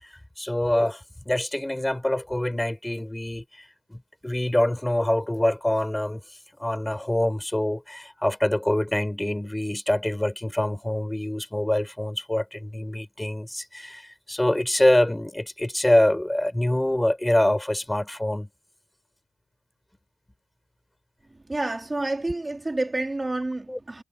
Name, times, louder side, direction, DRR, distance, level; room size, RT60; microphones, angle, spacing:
voice 1, 0.0-3.4 3.9-6.2 6.6-18.5 23.7-23.8, left 1 dB, 10° left, 4.9 m, -25 dB
voice 2, 21.5-24.0, right 2 dB, 20° right, 2.5 m, -29 dB
cardioid pair, 70°, 0 cm